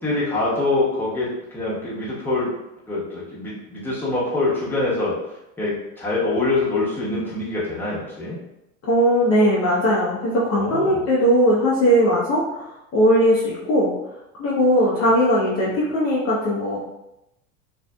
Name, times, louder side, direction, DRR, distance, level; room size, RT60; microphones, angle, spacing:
voice 1, 0.0-2.5 2.9-5.2 5.6-8.4 10.5-11.0, left 2 dB, 5° left, -8 dB, 1.0 m, -24 dB
voice 2, 8.8-13.9 14.4-16.8, equal, 35° left, -6 dB, 0.7 m, -19 dB
2.6 x 2.4 x 2.2 m, 0.88 s
hypercardioid pair, 95°, 43 cm